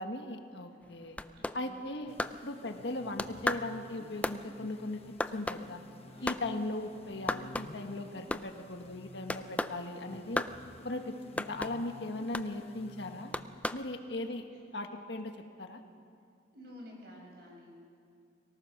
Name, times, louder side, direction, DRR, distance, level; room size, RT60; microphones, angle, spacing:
voice 1, 0.0-1.2 1.5-2.1 2.4-5.8 6.2-10.5 10.8-13.3 13.7-14.5 14.7-15.8, left 2 dB, 70° left, 5 dB, 1.5 m, -38 dB
sound 1, 0.8-2.9 3.2-6.5 6.8-6.9 7.1-7.9 8.2-8.7 9.3-9.8 10.4-10.6 11.4-11.8 12.3-12.5 13.3-13.9, left 1 dB, 10° left, 0.4 m, -35 dB
voice 2, 1.3-1.7 2.3-2.4 6.1-6.4 10.8-11.0 14.5-14.6 16.5-17.7, left 1 dB, 60° right, -1 dB, 5.8 m, -52 dB
sound 2, 2.1-13.8, left 2 dB, 35° left, 0.9 m, -52 dB
24.5 x 18.5 x 6.0 m, 2.4 s
head